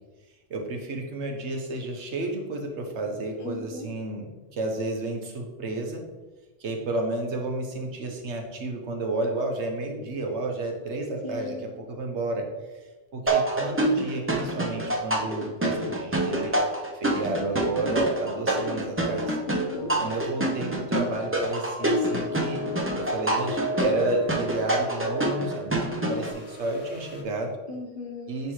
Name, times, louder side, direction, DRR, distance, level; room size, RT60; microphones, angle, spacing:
voice 1, 0.5-6.0 6.6-12.4 13.1-16.5 16.9-19.4 20.0-22.6 23.0-27.5 28.3-28.5, right 2 dB, 70° right, 2 dB, 1.2 m, -31 dB
voice 2, 3.4-3.9 11.2-11.6 19.5-19.9 27.7-28.3, left 2 dB, 50° left, 3 dB, 0.8 m, -37 dB
sound 1, 13.3-26.3, right 1 dB, 15° right, 0.4 m, -27 dB
sound 2, 19.7-20.5 20.8-21.1 21.8-27.2, left 1 dB, 90° left, 1.4 m, -35 dB
9.7 x 3.3 x 3.1 m, 1.2 s
omnidirectional pair, 1.2 m